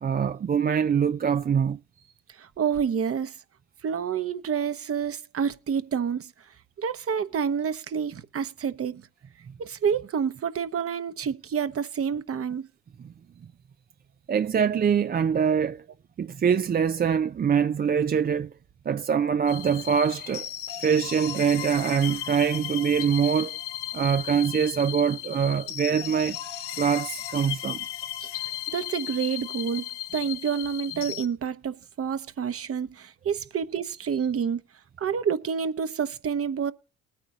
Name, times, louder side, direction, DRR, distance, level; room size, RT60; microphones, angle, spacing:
voice 1, 0.0-1.8 13.0-13.1 14.3-15.8 16.2-18.5 18.9-20.5 20.8-23.6 23.9-26.4 26.8-27.8, right 7 dB, 30° right, 0.5 m, -24 dB
voice 2, 2.4-3.4 3.8-6.3 6.8-9.0 9.6-12.7 28.2-28.3 28.7-34.6 35.0-36.7, right 7 dB, 45° right, 1.1 m, -28 dB
sound 1, 19.5-31.3, left 13 dB, 85° left, 1.6 m, -35 dB
20.0 x 9.1 x 2.8 m
supercardioid pair, 65°, 31 cm